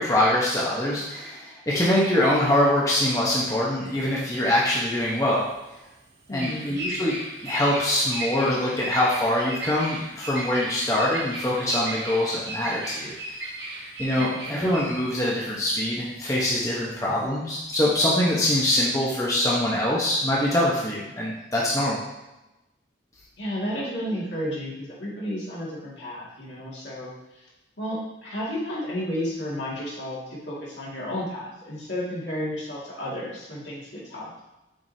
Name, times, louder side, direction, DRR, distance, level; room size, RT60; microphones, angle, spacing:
voice 1, 0.0-5.5 6.3-7.2 7.4-13.1 14.0-22.0, left 1 dB, 15° left, -6 dB, 0.9 m, -24 dB
Bird vocalization bird call bird song, 4.0-17.3, right 1 dB, 60° right, 1.5 m, -36 dB
voice 2, 6.3-6.7 14.3-14.6 23.4-27.4 27.8-34.3, equal, 70° left, -6 dB, 2.0 m, -32 dB
7.3 x 4.8 x 2.7 m, 0.99 s
head